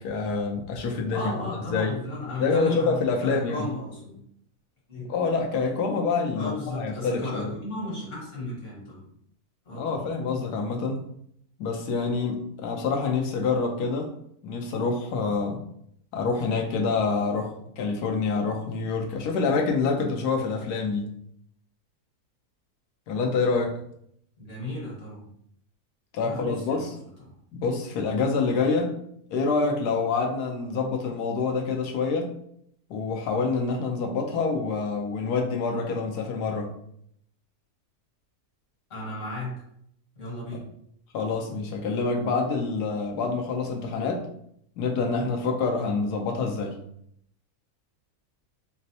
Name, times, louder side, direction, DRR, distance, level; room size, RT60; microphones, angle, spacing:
voice 1, 0.0-1.3 1.7-1.9 2.4-3.7 5.1-7.5 9.7-11.0 11.6-14.1 14.4-15.6 16.1-21.1 23.1-23.8 26.1-26.9 27.5-28.9 29.3-32.3 32.9-36.7 41.1-44.3 44.8-46.8, left 4 dB, 85° left, 1 dB, 1.2 m, -26 dB
voice 2, 1.1-4.2 4.9-5.1 6.3-9.1 9.7-10.1 24.4-25.3 26.2-27.0 27.2-27.3 38.9-39.6 40.2-40.6, left 2 dB, 50° left, -5 dB, 1.6 m, -34 dB
4.3 x 2.0 x 2.7 m, 0.70 s
omnidirectional pair, 1.7 m